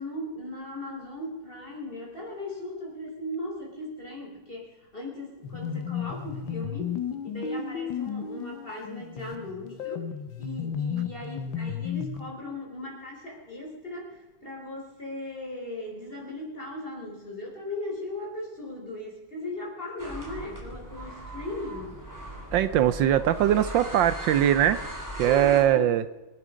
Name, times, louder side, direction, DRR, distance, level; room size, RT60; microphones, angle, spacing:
voice 1, 0.0-6.9 7.2-10.0 10.4-22.0 25.2-25.9, left 1 dB, 25° left, -1 dB, 4.6 m, -38 dB
sound 1, 5.4-12.3, left 7 dB, 75° left, 1.7 m, -33 dB
sound 2, 20.0-25.6, right 1 dB, 10° right, 3.4 m, -39 dB
voice 2, 22.5-24.8 25.2-26.0, right 11 dB, 75° right, 13 dB, 1.3 m, -21 dB
25.0 x 11.0 x 5.0 m, 1.1 s
omnidirectional pair, 2.1 m